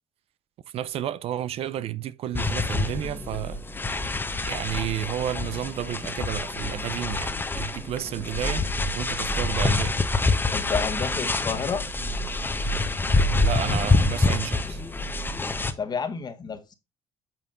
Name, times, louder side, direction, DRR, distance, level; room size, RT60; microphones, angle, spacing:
voice 1, 0.7-3.6 4.4-8.6 8.9-10.0 13.4-14.8, right 11 dB, 65° right, 0.6 m, -31 dB
sound 1, 2.3-15.7, left 2 dB, 20° left, 1.1 m, -26 dB
voice 2, 10.5-11.8 15.8-16.8, left 6 dB, 40° left, 1.6 m, -30 dB
9.0 x 6.0 x 2.5 m
supercardioid pair, 85°, 11 cm